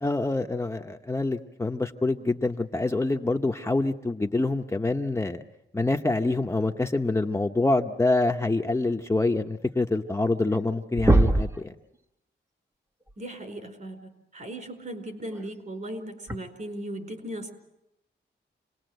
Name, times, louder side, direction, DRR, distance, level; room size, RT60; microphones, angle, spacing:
voice 1, 0.0-5.4 5.7-11.7, left 2 dB, 15° left, 3 dB, 0.9 m, -26 dB
sound 1, 10.1-10.2 10.4-10.7 11.0-11.6 13.3-13.4 15.3-15.4 16.3-16.4, right 2 dB, 15° right, 1.1 m, -21 dB
voice 2, 13.2-17.5, right 1 dB, 45° right, 6 dB, 4.5 m, -37 dB
28.0 x 20.0 x 7.9 m, 0.87 s
wide cardioid pair, 105°, 19 cm